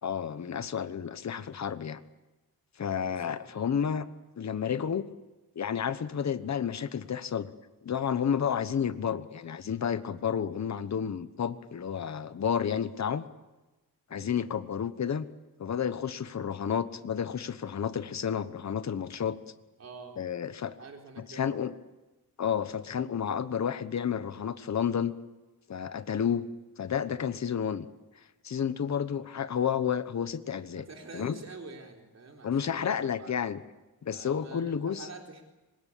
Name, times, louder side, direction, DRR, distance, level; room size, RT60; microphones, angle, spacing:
voice 1, 0.0-2.0 2.8-4.1 4.4-5.1 5.5-7.5 7.8-13.2 14.1-15.3 15.6-19.4 20.2-20.8 21.2-21.7 22.4-25.2 25.7-26.5 26.8-27.9 28.4-30.9 31.1-31.4 32.4-33.6 34.0-35.1, left 8 dB, 50° left, 12 dB, 1.2 m, -31 dB
voice 2, 3.0-3.8 14.1-14.4 19.8-20.2 20.8-21.6 26.1-26.3 30.8-33.3 34.1-35.4, right 3 dB, 50° right, 2 dB, 3.9 m, -47 dB
25.5 x 21.0 x 8.6 m, 1.1 s
wide cardioid pair, 140°, 35 cm